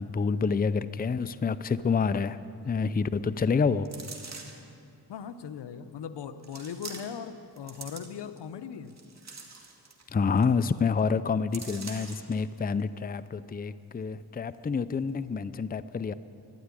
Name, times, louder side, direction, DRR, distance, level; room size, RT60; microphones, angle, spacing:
voice 1, 0.0-2.4 2.6-3.9 10.1-16.1, left 5 dB, 25° left, 14 dB, 0.5 m, -28 dB
sound 1, 3.8-4.7 5.5-5.6 6.4-7.3 7.6-8.4 8.9-10.1 10.4-10.5 10.8-11.0 11.5-12.3 12.8-12.9, right 4 dB, 40° right, 2.2 m, -44 dB
voice 2, 5.1-9.0, left 7 dB, 85° left, 11 dB, 0.8 m, -39 dB
13.0 x 11.0 x 9.8 m, 2.7 s
cardioid pair, 75°, 40 cm